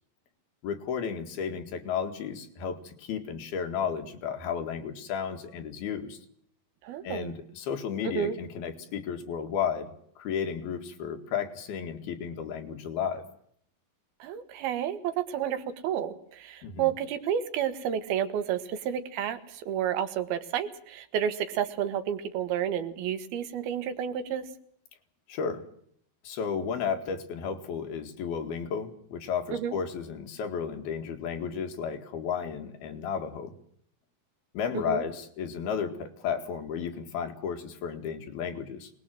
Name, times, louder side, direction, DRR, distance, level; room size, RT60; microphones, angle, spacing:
voice 1, 0.6-6.2 7.0-9.9 10.2-13.2 16.6-16.9 25.3-25.6 26.2-33.5 34.5-38.9, left 7 dB, 90° left, 5 dB, 3.9 m, -33 dB
voice 2, 6.8-7.4 8.0-8.3 14.2-24.5 29.5-29.8 34.7-35.0, right 9 dB, 85° right, 10 dB, 3.4 m, -31 dB
24.5 x 20.0 x 7.8 m, 0.66 s
omnidirectional pair, 4.3 m